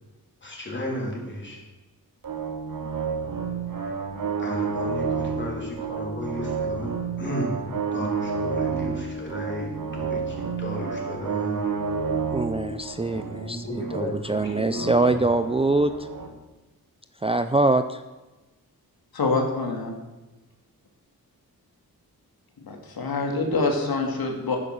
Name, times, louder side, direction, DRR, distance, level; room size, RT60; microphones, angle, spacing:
voice 1, 0.4-1.6 4.4-11.7 13.1-15.3, equal, 30° left, -1 dB, 3.6 m, -34 dB
sound 1, 2.2-16.3, right 5 dB, 60° right, 1.8 m, -30 dB
voice 2, 12.3-16.1 17.2-18.0, right 2 dB, 15° right, 9 dB, 0.4 m, -24 dB
voice 3, 19.1-19.9 22.6-24.6, left 3 dB, 75° left, 2 dB, 2.3 m, -26 dB
11.5 x 9.9 x 6.6 m, 1.1 s
wide cardioid pair, 130°, 37 cm